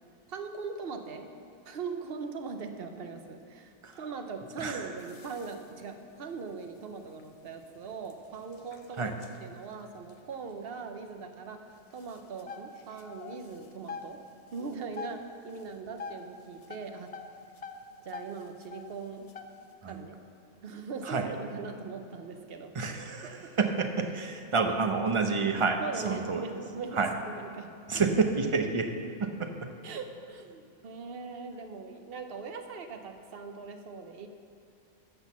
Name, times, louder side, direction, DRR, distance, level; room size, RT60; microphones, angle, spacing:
voice 1, 0.3-1.3 1.7-9.1 9.4-11.6 11.9-14.2 14.5-17.1 18.0-19.3 19.8-20.2 20.6-22.7 23.4-23.5 25.8-27.7 29.8-34.3, right 4 dB, 50° right, 6 dB, 0.9 m, -40 dB
sound 1, 5.0-11.1 11.4-11.5 11.9-14.2 14.5-15.2 15.5-16.3 16.6-18.9 19.3-19.7, left 5 dB, 60° left, 0.3 m, -45 dB
voice 2, 22.7-26.4 26.9-27.1 27.9-28.9 29.2-29.5, right 4 dB, 30° right, 5 dB, 0.6 m, -29 dB
12.0 x 6.3 x 7.2 m, 2.6 s
omnidirectional pair, 1.4 m